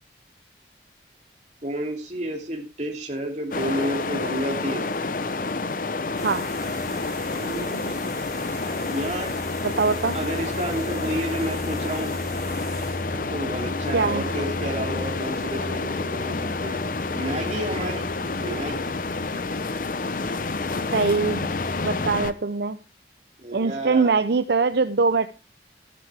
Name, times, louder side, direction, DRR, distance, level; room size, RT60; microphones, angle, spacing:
voice 1, 1.6-4.9 7.4-7.9 8.9-9.3 10.1-12.2 13.1-16.9 17.1-18.1 18.4-18.9 23.4-24.2, right 1 dB, 40° right, 2 dB, 2.8 m, -31 dB
sound 1, 3.5-22.3, left 3 dB, 50° left, 0.7 m, -29 dB
sound 2, 6.2-22.2, left 1 dB, ahead, 7.6 m, -37 dB
voice 2, 9.6-10.1 13.9-14.2 20.9-21.5 21.8-22.8 23.5-25.3, right 4 dB, 70° right, 11 dB, 0.6 m, -22 dB
13.0 x 11.5 x 3.4 m, 0.30 s
head